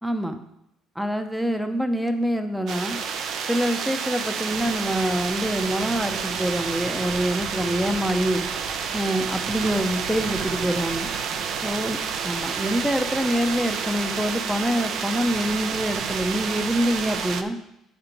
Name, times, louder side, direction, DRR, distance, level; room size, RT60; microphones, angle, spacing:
voice 1, 0.0-0.4 1.0-3.0 3.5-8.5 8.9-11.1 11.6-12.0 12.2-17.6, equal, ahead, 7 dB, 0.7 m, -25 dB
sound 1, 2.7-17.4, right 6 dB, 60° right, 0.6 m, -29 dB
8.6 x 4.5 x 5.2 m, 0.83 s
cardioid pair, 125°, 0 cm